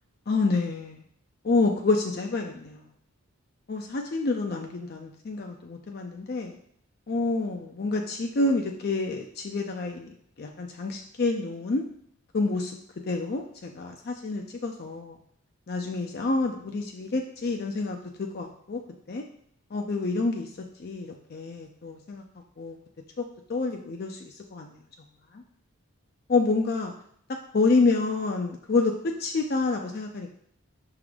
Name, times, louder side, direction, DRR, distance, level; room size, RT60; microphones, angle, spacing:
voice 1, 0.3-1.0 1.4-2.8 3.7-6.6 7.1-11.8 12.3-12.8 13.1-15.2 15.7-18.8 19.1-19.2 19.7-20.5 20.8-22.2 22.6-22.8 23.2-23.3 23.5-24.8 25.3-25.4 26.3-26.9 27.5-30.3, left 3 dB, 45° left, 2 dB, 0.4 m, -28 dB
6.0 x 3.6 x 4.9 m, 0.67 s
head